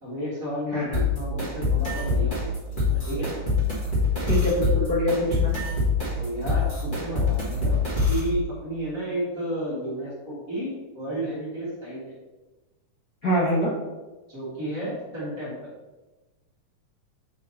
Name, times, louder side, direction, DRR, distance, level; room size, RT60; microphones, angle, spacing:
voice 1, 0.0-3.3 6.2-7.8 8.1-12.0 14.3-15.6, equal, 30° right, -8 dB, 1.8 m, -32 dB
sound 1, 0.9-8.3, left 3 dB, 25° left, 1.3 m, -25 dB
voice 2, 4.2-5.5 13.2-13.7, equal, 55° left, -7 dB, 1.0 m, -24 dB
7.5 x 3.8 x 4.3 m, 1.2 s
omnidirectional pair, 3.6 m